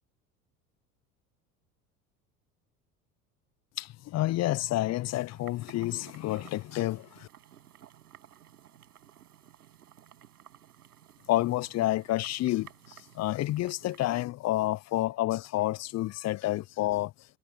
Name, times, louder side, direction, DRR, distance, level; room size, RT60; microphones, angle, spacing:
voice 1, 3.8-7.3 11.3-12.7 13.1-17.1, left 16 dB, 35° left, 0.7 m, -29 dB
sound 1, 5.3-14.2, right 10 dB, 80° right, 7.9 m, -55 dB
hypercardioid pair, 70°, 45 cm